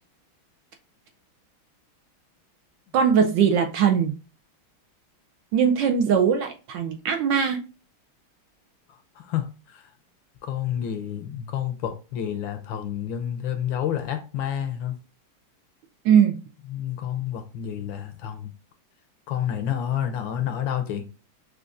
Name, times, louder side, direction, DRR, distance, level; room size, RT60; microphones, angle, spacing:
voice 1, 2.9-4.1 5.5-7.7 16.0-16.4, right 7 dB, 75° right, 1.1 m, -20 dB
voice 2, 9.2-9.8 10.4-15.0 16.7-18.5 19.3-21.1, left 10 dB, 75° left, 1.2 m, -29 dB
6.3 x 2.5 x 2.4 m
omnidirectional pair, 2.3 m